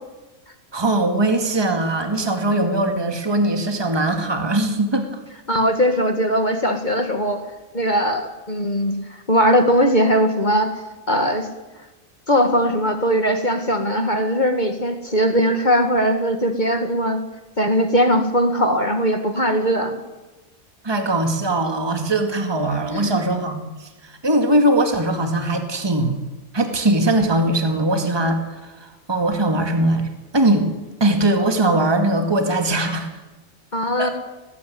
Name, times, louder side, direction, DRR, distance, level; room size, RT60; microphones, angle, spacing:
voice 1, 0.7-5.2 20.8-26.2 26.5-30.1 30.3-30.7 31.0-33.1 34.0-34.1, right 1 dB, 20° right, 6 dB, 2.0 m, -20 dB
voice 2, 5.5-7.4 7.7-11.5 12.3-17.2 17.6-20.0 22.9-23.1 33.7-34.1, equal, 35° left, 6 dB, 1.9 m, -20 dB
19.5 x 15.5 x 9.4 m, 1.1 s
omnidirectional pair, 1.4 m